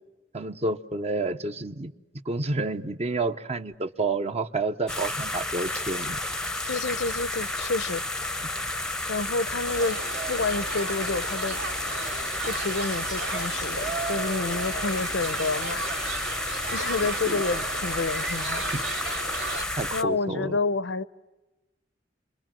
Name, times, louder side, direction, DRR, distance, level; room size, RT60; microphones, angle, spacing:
voice 1, 0.3-1.9 2.2-6.2 17.3-17.4 18.7-18.8 19.8-20.6, right 2 dB, 35° right, 0.9 m, -29 dB
sound 1, 4.9-20.0, left 2 dB, 5° left, 0.8 m, -31 dB
voice 2, 6.7-8.0 9.1-10.0 10.3-11.6 12.5-15.8 16.1-16.2 16.7-18.7 19.9-21.0, left 3 dB, 75° left, 0.8 m, -29 dB
sound 2, 9.7-19.7, right 4 dB, 85° right, 2.7 m, -35 dB
30.0 x 22.5 x 7.6 m
head